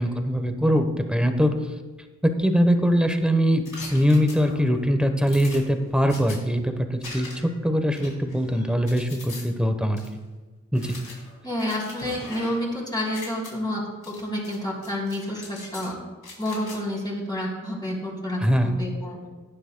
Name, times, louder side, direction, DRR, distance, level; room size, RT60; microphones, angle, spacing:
voice 1, 0.0-1.5 2.2-3.6 3.9-10.0 10.7-11.0 18.4-18.7, equal, 5° right, 6 dB, 0.9 m, -22 dB
sound 1, 3.7-4.8 5.3-6.4 7.0-7.6 7.9-9.4 10.0-10.1 10.7-12.7 13.0-13.5 14.0-14.6 14.8-15.9 16.2-16.8, left 3 dB, 80° left, 3.1 m, -41 dB
voice 2, 11.4-13.8 14.1-16.0 16.4-19.2, left 1 dB, 15° left, -5 dB, 3.4 m, -29 dB
18.0 x 9.9 x 2.2 m, 1.3 s
wide cardioid pair, 120°, 30 cm